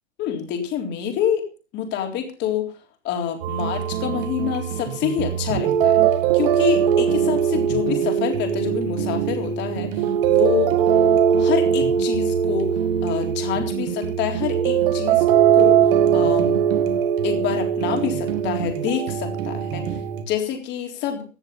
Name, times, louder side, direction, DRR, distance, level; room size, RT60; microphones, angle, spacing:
voice 1, 0.2-1.5 1.7-2.7 3.0-6.0 6.3-10.7 11.4-15.3 15.5-16.6 17.2-21.2, left 9 dB, 30° left, 4 dB, 3.7 m, -27 dB
sound 1, 3.4-20.2, right 8 dB, 45° right, 2.1 m, -21 dB
17.0 x 10.5 x 5.6 m, 0.36 s
supercardioid pair, 155°, 36 cm